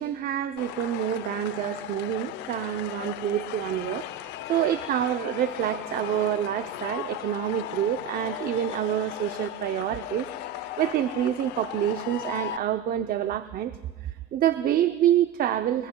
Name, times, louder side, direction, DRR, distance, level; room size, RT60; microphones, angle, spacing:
voice 1, 0.0-4.1 4.5-10.3 10.8-13.7 14.3-15.9, right 11 dB, 60° right, 10 dB, 0.6 m, -27 dB
sound 1, 0.6-12.6, left 14 dB, 90° left, 0.6 m, -37 dB
28.5 x 21.5 x 2.3 m, 1.4 s
cardioid pair, 110°, 17 cm